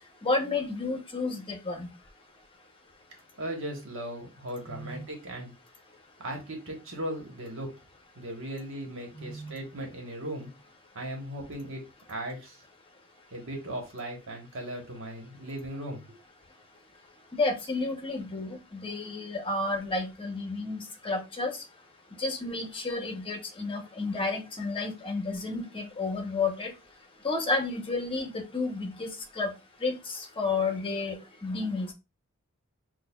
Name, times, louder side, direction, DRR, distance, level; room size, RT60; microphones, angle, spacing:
voice 1, 0.2-1.9 4.7-5.0 9.1-9.5 17.3-21.6 22.2-26.7 27.2-29.1 29.4-29.5 29.8-31.2 31.4-31.9, left 3 dB, 25° left, 3 dB, 0.9 m, -31 dB
voice 2, 3.4-5.5 6.2-7.7 8.1-10.5 10.9-12.6 13.3-16.0, right 1 dB, 60° right, 2 dB, 1.2 m, -37 dB
6.3 x 2.3 x 2.3 m, 0.26 s
head